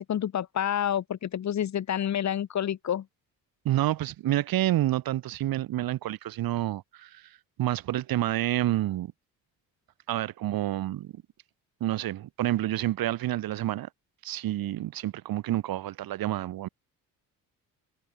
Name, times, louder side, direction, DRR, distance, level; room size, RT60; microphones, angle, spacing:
voice 1, 0.0-3.0, left 10 dB, 50° left, 1.5 m, -28 dB
voice 2, 3.6-7.3 7.6-9.1 10.1-11.2 11.8-13.9 14.2-16.7, right 14 dB, 75° right, 3.0 m, -28 dB
cardioid pair, 100°, 35 cm